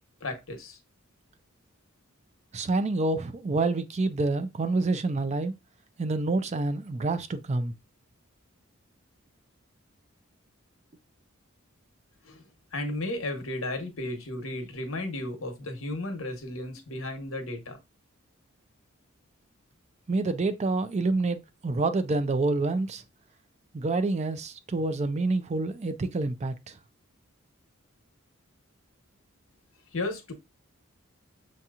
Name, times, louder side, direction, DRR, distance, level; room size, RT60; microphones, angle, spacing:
voice 1, 0.2-0.8 12.2-12.4 12.7-17.8 29.9-30.3, left 2 dB, 70° left, 1.0 m, -34 dB
voice 2, 2.5-5.5 6.0-7.7 20.1-23.0 23.7-26.7, right 3 dB, 35° right, 0.4 m, -27 dB
6.3 x 2.9 x 2.4 m
head